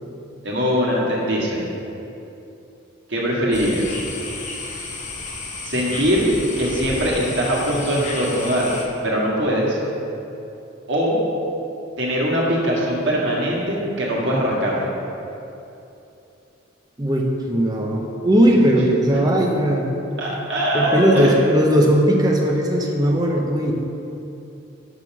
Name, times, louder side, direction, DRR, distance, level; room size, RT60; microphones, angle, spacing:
voice 1, 0.4-1.6 3.1-4.0 5.6-6.3 6.6-8.7 9.0-9.8 10.9-11.2 12.0-14.9 18.7-18.8 20.2-21.5, equal, 60° right, -5 dB, 1.7 m, -21 dB
sound 1, 3.5-8.8, left 3 dB, 35° left, 0.8 m, -32 dB
voice 2, 17.0-19.9 20.7-23.7, right 1 dB, 20° right, 0 dB, 0.7 m, -18 dB
6.2 x 5.2 x 6.1 m, 2.8 s
head